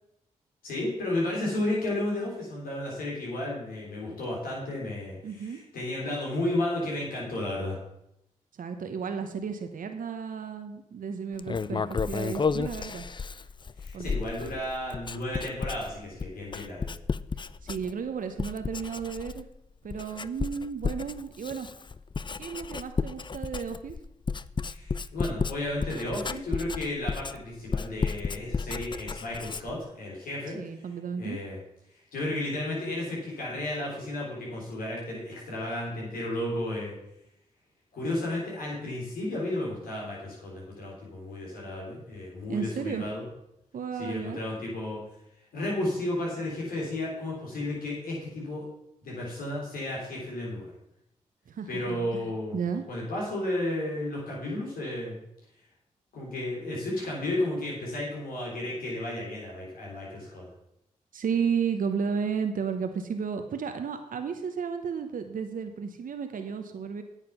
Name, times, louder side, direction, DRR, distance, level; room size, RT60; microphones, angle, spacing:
voice 1, 0.6-7.8 13.8-17.0 24.6-30.8 31.2-31.6 32.1-36.9 37.9-43.2 43.9-45.0 45.5-48.6 49.0-50.7 51.7-52.6 52.9-55.2 56.1-60.5, left 1 dB, 85° left, -3 dB, 3.8 m, -33 dB
voice 2, 5.2-5.6 8.6-13.1 13.9-14.1 17.4-19.4 19.8-21.7 22.4-24.0 30.6-31.4 42.5-43.0 43.7-44.4 51.5-52.8 61.1-67.0, right 6 dB, 70° right, 7 dB, 0.9 m, -33 dB
Writing, 11.4-18.1 18.4-19.6 19.9-29.9, left 5 dB, 35° left, 0.4 m, -33 dB
9.1 x 7.4 x 5.9 m, 0.82 s
supercardioid pair, 45°, 15 cm